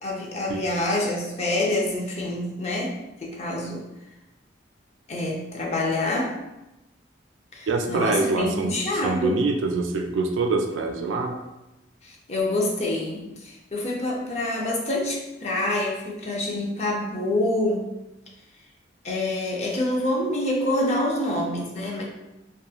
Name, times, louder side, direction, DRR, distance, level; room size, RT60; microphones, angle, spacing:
voice 1, 0.0-3.8 5.1-6.4 7.5-9.4 12.0-17.9 19.0-22.0, left 1 dB, 35° left, -2 dB, 0.5 m, -26 dB
voice 2, 7.7-11.4, right 3 dB, 80° right, 3 dB, 0.4 m, -25 dB
2.9 x 2.3 x 2.3 m, 0.98 s
head